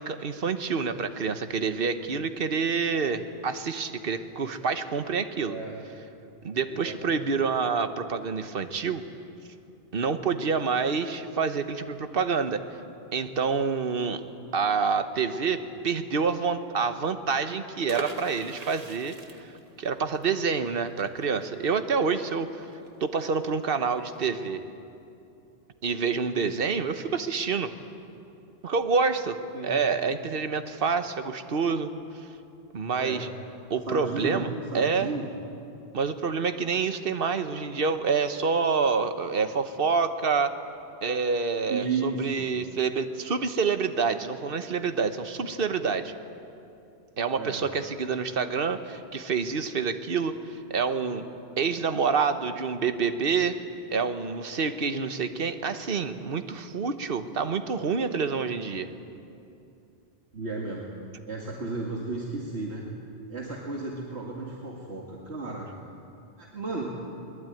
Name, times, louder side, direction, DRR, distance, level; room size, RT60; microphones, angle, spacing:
voice 1, 0.0-5.6 6.4-9.0 9.9-12.6 13.1-14.2 14.5-19.2 19.4-19.5 19.8-22.6 23.0-24.6 25.8-27.7 28.6-29.4 29.6-31.9 32.7-33.3 33.7-34.5 34.7-35.1 35.9-40.5 41.0-46.1 47.2-51.2 51.6-53.6 53.9-58.9, right 5 dB, 60° right, 9 dB, 1.3 m, -27 dB
voice 2, 5.4-5.8 6.7-7.3 29.5-29.8 33.0-33.3 33.9-35.3 41.7-42.5 47.4-47.6 60.3-60.9 61.3-62.9 63.3-65.7 66.4-67.0, right 3 dB, 85° right, -2 dB, 2.4 m, -33 dB
sound 1, 17.9-23.5 23.8-23.9 24.2-24.5, right 4 dB, 40° right, 1.3 m, -41 dB
21.5 x 21.0 x 9.1 m, 2.7 s
omnidirectional pair, 1.1 m